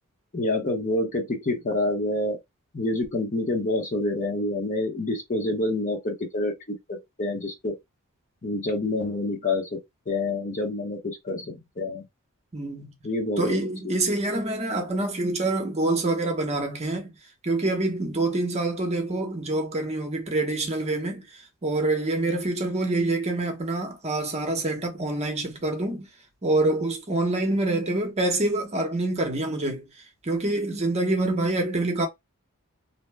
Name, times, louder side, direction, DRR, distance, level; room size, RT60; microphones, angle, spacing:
voice 1, 0.3-2.4 2.7-7.7 8.4-9.8 10.1-12.0 13.0-14.0, left 2 dB, 35° left, 0.8 m, -27 dB
voice 2, 12.5-12.9 13.4-17.1 17.4-21.2 21.6-26.1 26.4-29.8 30.3-32.1, right 2 dB, 30° right, 0.7 m, -26 dB
2.7 x 2.1 x 3.2 m
head